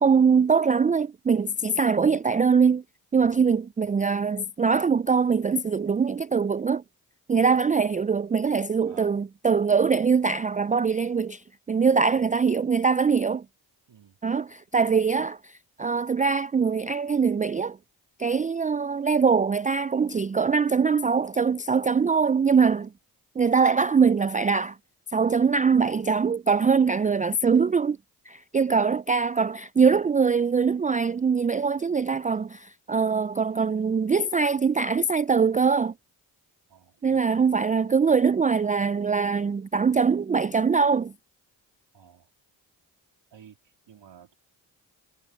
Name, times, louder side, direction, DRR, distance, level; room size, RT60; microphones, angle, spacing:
voice 1, 0.0-2.8 3.1-6.8 7.3-13.5 14.2-17.8 18.2-22.9 23.4-24.8 25.1-28.0 28.3-35.9 37.0-41.1, right 5 dB, 20° right, 0.3 m, -22 dB
voice 2, 8.9-9.2 12.1-12.3 13.9-14.2 36.7-37.4 41.9-42.3 43.3-43.6 43.9-44.3, right 8 dB, 75° right, 2.9 m, -52 dB
cardioid pair, 45°, 44 cm